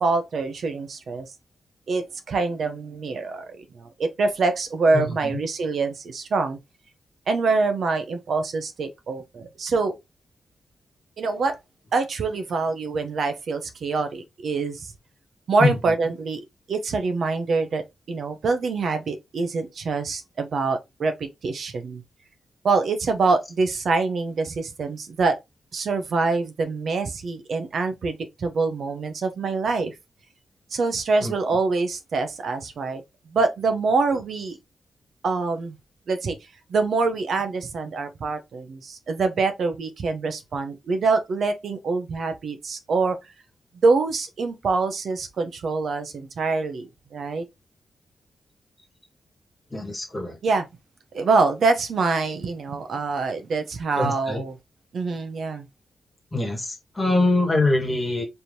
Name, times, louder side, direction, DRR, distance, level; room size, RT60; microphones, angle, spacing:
voice 1, 0.0-1.3 1.9-6.6 7.3-10.0 11.2-11.6 11.9-14.9 15.5-16.4 16.7-22.0 22.6-25.4 25.7-29.9 30.7-33.0 33.3-34.6 35.2-35.8 36.1-36.4 36.7-43.2 43.8-47.4 50.4-50.7 51.1-54.5 54.9-55.7, right 4 dB, 60° right, 0.7 m, -25 dB
voice 2, 4.9-5.4 15.6-15.7 31.2-31.3 49.7-50.4 54.0-54.4 56.3-58.2, left 2 dB, 15° left, 1.4 m, -24 dB
4.4 x 3.4 x 2.7 m
wide cardioid pair, 170°, 0 cm